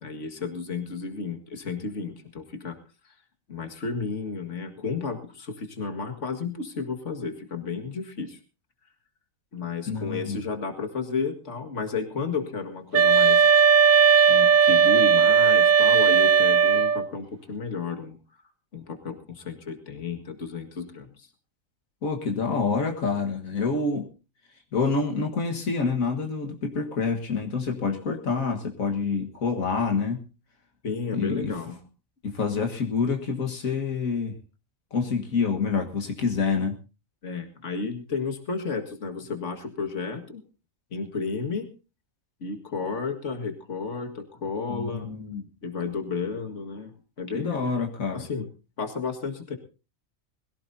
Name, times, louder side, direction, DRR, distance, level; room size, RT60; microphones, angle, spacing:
voice 1, 0.0-2.8 3.5-8.4 9.5-13.5 14.3-18.2 18.7-21.3 30.8-31.8 37.2-40.4 40.9-41.7 42.4-45.1 45.6-46.9 47.2-47.8 48.1-48.5 48.8-49.6, left 4 dB, 60° left, 5 dB, 2.2 m, -32 dB
voice 2, 9.9-10.4 22.0-24.1 24.7-30.2 31.1-31.6 32.2-34.4 34.9-36.8 44.7-45.5 47.3-48.3, left 4 dB, 80° left, 2 dB, 2.0 m, -27 dB
sound 1, 12.9-17.1, right 6 dB, 80° right, 1.3 m, -17 dB
21.5 x 16.5 x 2.7 m, 0.32 s
omnidirectional pair, 1.4 m